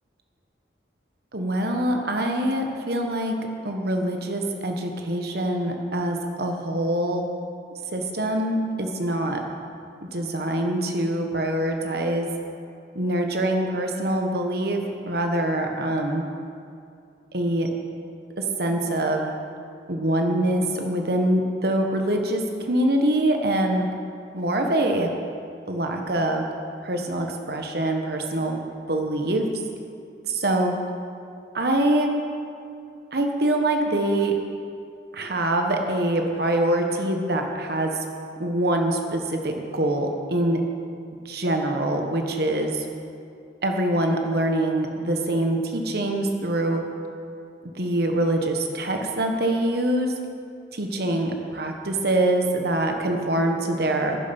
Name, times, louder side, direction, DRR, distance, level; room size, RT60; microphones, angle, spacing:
voice 1, 1.3-3.3 3.6-7.2 7.9-9.4 10.1-12.3 12.9-16.2 17.3-17.7 18.6-19.3 19.9-23.9 24.3-25.1 25.7-26.4 26.8-28.6 28.9-29.4 30.2-30.7 31.5-32.1 33.1-34.3 35.1-37.9 38.4-40.6 41.2-42.8 43.6-46.8 47.8-50.1 50.7-54.2, right 1 dB, 60° right, 3 dB, 1.4 m, -24 dB
11.0 x 10.5 x 6.0 m, 2.5 s
head